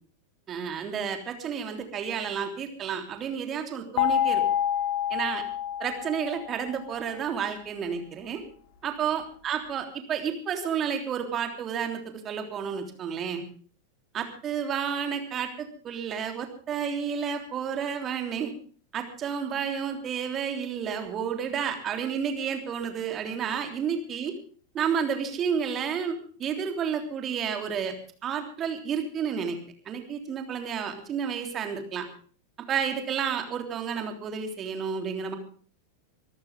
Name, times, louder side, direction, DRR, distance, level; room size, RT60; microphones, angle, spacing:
voice 1, 0.5-4.4 5.1-5.4 5.8-8.4 8.8-13.4 14.1-18.5 18.9-24.3 24.7-27.9 28.2-29.6 29.8-32.1 32.7-35.4, right 7 dB, 30° right, 6 dB, 3.3 m, -31 dB
sound 1, 4.0-6.9, left 10 dB, 50° left, 2.3 m, -27 dB
24.0 x 14.0 x 3.6 m, 0.43 s
figure-of-eight pair, 90°, 0 cm